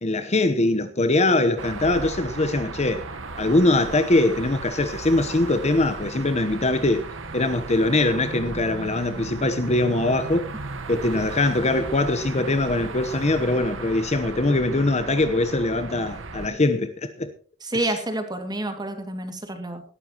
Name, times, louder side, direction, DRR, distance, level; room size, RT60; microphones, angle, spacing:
voice 1, 0.0-3.1 3.4-7.1 7.3-10.5 10.9-17.3 17.7-17.9, left 2 dB, 35° left, 1.0 m, -22 dB
sound 1, 1.6-16.5, right 3 dB, 70° right, 1.3 m, -36 dB
voice 2, 17.6-19.8, right 1 dB, 20° right, 2.3 m, -28 dB
18.5 x 12.5 x 3.0 m
head